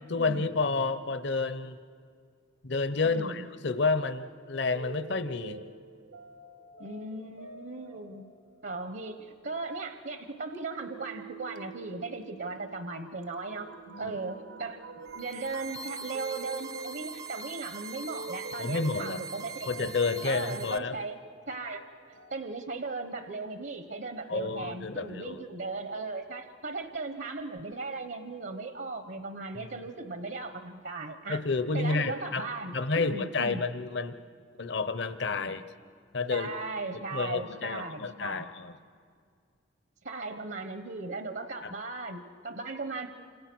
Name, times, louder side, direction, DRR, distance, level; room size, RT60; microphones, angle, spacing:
voice 1, 0.1-1.8 2.6-5.6 13.9-14.2 18.6-19.2 19.7-21.0 24.3-25.4 29.5-29.8 31.3-32.5 32.7-34.2 34.6-35.6 36.1-36.5 37.1-38.7 41.6-41.7, left 3 dB, 65° left, 12 dB, 0.9 m, -30 dB
voice 2, 3.0-3.4 6.8-8.3 8.6-14.8 15.1-19.9 20.2-21.2 21.5-31.4 31.7-33.6 36.3-38.5 40.0-43.1, right 3 dB, 65° right, 9 dB, 1.1 m, -37 dB
sound 1, 3.7-22.4, right 3 dB, 85° right, 1.5 m, -48 dB
sound 2, 15.0-20.8, right 5 dB, 20° right, 0.6 m, -42 dB
29.0 x 26.5 x 6.2 m, 2.2 s
head